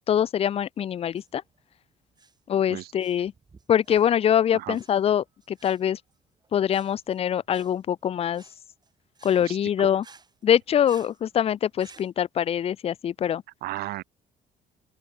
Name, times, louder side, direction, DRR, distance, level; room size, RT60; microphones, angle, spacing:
voice 1, 0.1-1.4 2.5-3.3 3.7-6.0 6.5-8.4 9.2-10.0 10.4-13.4, left 9 dB, 35° left, 0.4 m, -24 dB
sound 1, 1.0-12.1, right 4 dB, 25° right, 3.5 m, -56 dB
voice 2, 9.4-9.9 13.6-14.0, right 17 dB, 65° right, 0.4 m, -34 dB
open air
cardioid pair, 110°, 17 cm